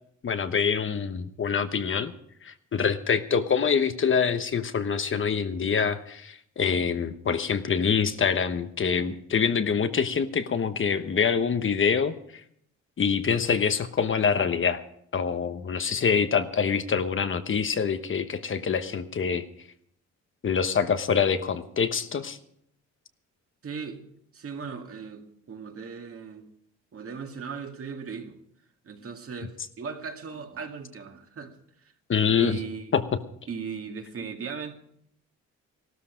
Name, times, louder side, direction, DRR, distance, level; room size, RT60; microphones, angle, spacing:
voice 1, 0.2-2.1 2.4-12.1 13.0-14.8 15.1-19.5 20.4-22.4 32.1-32.6 32.9-33.2, left 6 dB, 40° left, 1.1 m, -25 dB
voice 2, 23.6-24.0 24.3-26.5 26.9-28.4 28.8-31.5 32.4-32.9 33.5-34.7, right 5 dB, 50° right, 2.2 m, -37 dB
15.5 x 13.0 x 5.1 m
cardioid pair, 90°, 30 cm